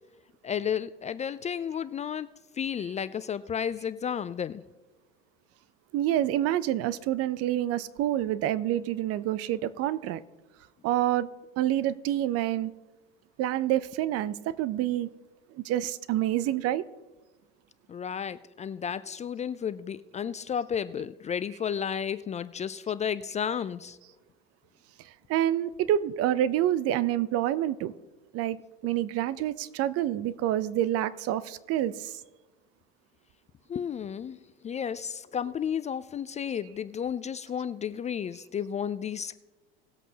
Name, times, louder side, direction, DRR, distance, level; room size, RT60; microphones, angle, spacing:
voice 1, 0.4-4.6 17.9-24.0 33.7-34.4 34.6-39.3, left 8 dB, 25° left, 15 dB, 0.4 m, -32 dB
voice 2, 5.9-10.2 10.8-11.3 11.6-12.7 13.4-15.1 15.5-16.8 25.3-27.9 28.3-28.6 28.8-32.2, right 12 dB, 50° right, 17 dB, 0.7 m, -27 dB
19.0 x 8.0 x 2.9 m, 1.2 s
hypercardioid pair, 85°, 30 cm